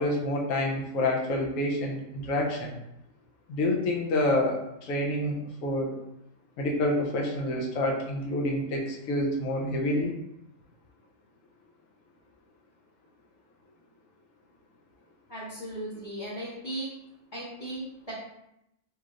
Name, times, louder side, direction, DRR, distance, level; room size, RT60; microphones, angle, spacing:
voice 1, 0.0-2.8 3.5-5.9 6.6-10.1, left 1 dB, 70° left, -1 dB, 1.1 m, -28 dB
voice 2, 15.3-16.9 17.3-18.1, right 1 dB, 25° left, -12 dB, 1.4 m, -37 dB
4.5 x 3.1 x 2.5 m, 0.83 s
omnidirectional pair, 1.5 m